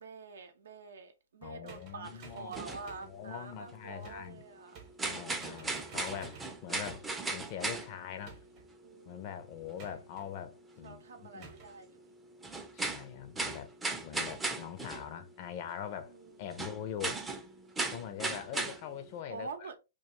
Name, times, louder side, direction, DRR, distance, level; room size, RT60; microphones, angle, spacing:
voice 1, 0.0-4.8 8.8-9.4 9.8-10.0 10.8-12.1 16.0-16.5 19.3-19.8, right 4 dB, 80° right, 0.6 m, -47 dB
voice 2, 1.4-2.5 3.0-4.4 5.0-8.4 9.1-11.0 11.3-11.5 12.7-13.7 14.0-16.1 16.4-17.2 17.9-19.5, left 9 dB, 45° left, 0.4 m, -43 dB
sound 1, 1.7-3.1 4.0-4.4 4.7-5.1 5.4-7.2 8.2-8.7 9.8-10.3 11.4-11.8, right 6 dB, 40° right, 0.8 m, -52 dB
sound 2, 2.0-2.1 2.5-3.7 4.2-4.4 4.9-8.4 8.7-8.8 9.4-9.5 9.7-9.8 10.4-10.5 10.9-11.0 11.7-11.8 12.3-15.3 15.6-15.7 16.4-19.2, right 3 dB, 10° right, 0.4 m, -37 dB
2.3 x 2.3 x 2.9 m
hypercardioid pair, 130°, 0 cm